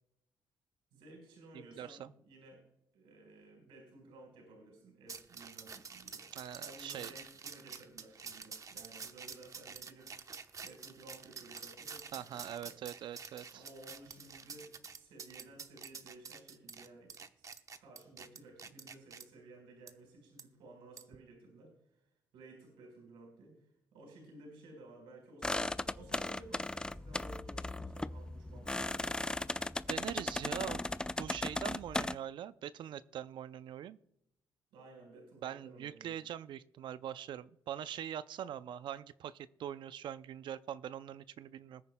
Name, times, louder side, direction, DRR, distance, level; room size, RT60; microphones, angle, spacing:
voice 1, 0.9-2.6 2.9-6.3 6.6-10.1 10.6-12.8 13.5-17.4 17.8-22.0 22.3-29.3 34.7-36.2, right 2 dB, 85° right, 1 dB, 4.4 m, -55 dB
voice 2, 1.5-2.1 6.3-7.1 12.1-13.6 29.9-30.8 31.2-34.0 35.4-41.8, right 10 dB, 70° right, 15 dB, 0.4 m, -43 dB
sound 1, 5.1-19.2 19.9-20.0 20.4-20.5 21.0-21.2, right 5 dB, 40° right, 0.9 m, -48 dB
sound 2, 25.4-32.2, left 2 dB, 10° left, 0.4 m, -37 dB
21.0 x 9.2 x 2.2 m, 0.81 s
cardioid pair, 75°, 8 cm